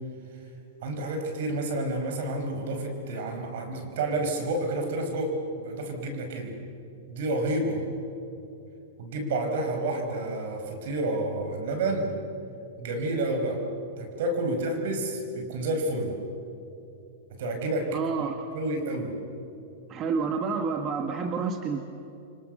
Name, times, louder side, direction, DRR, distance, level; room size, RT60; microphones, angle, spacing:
voice 1, 0.8-6.6 7.1-7.9 9.0-12.2 12.8-13.6 14.0-16.2 17.4-18.0 18.5-19.2, right 2 dB, 70° right, 4 dB, 5.6 m, -29 dB
voice 2, 17.9-18.5 19.9-21.8, right 5 dB, 35° right, 6 dB, 1.7 m, -29 dB
30.0 x 25.0 x 6.7 m, 2.8 s
hypercardioid pair, 125°, 0 cm